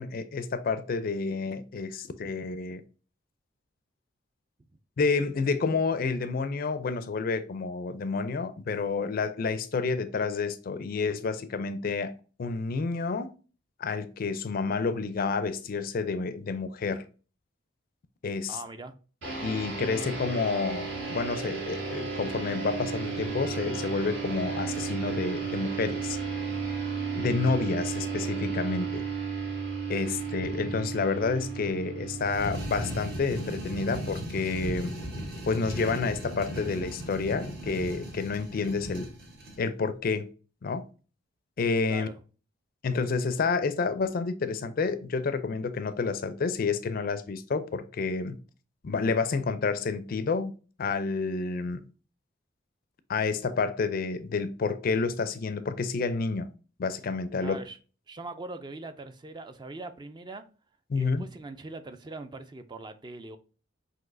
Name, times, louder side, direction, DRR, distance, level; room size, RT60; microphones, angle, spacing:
voice 1, 0.0-2.8 5.0-12.1 12.4-13.3 13.8-17.0 18.2-18.6 19.4-26.2 27.1-29.0 29.9-34.9 35.5-39.1 39.6-40.3 40.6-40.8 41.6-42.1 42.8-48.4 48.8-50.5 50.8-51.8 53.1-56.5 56.8-57.6 60.9-61.2, left 4 dB, 50° left, 0.4 m, -29 dB
voice 2, 18.5-19.0 41.9-42.2 57.4-57.8 58.1-60.4 61.0-63.4, right 2 dB, 25° right, 0.3 m, -41 dB
sound 1, 19.2-34.0, right 5 dB, 70° right, 1.7 m, -34 dB
sound 2, 32.2-39.6, equal, 55° right, 1.2 m, -37 dB
5.8 x 2.8 x 2.6 m
head